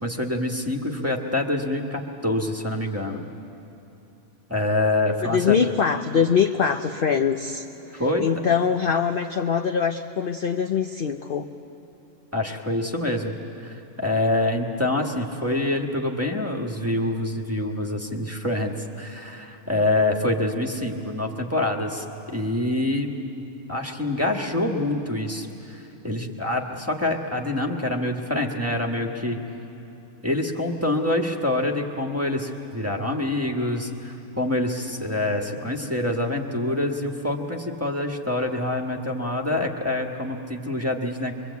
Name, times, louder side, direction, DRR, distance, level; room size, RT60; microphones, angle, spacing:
voice 1, 0.0-3.3 4.5-5.5 7.9-8.3 12.3-13.3 13.6-23.1 23.7-29.4 30.2-41.3, left 1 dB, 10° right, 2 dB, 1.4 m, -26 dB
voice 2, 5.2-11.5, left 7 dB, 50° left, 6 dB, 0.7 m, -23 dB
23.5 x 23.5 x 8.3 m, 2.9 s
omnidirectional pair, 1.5 m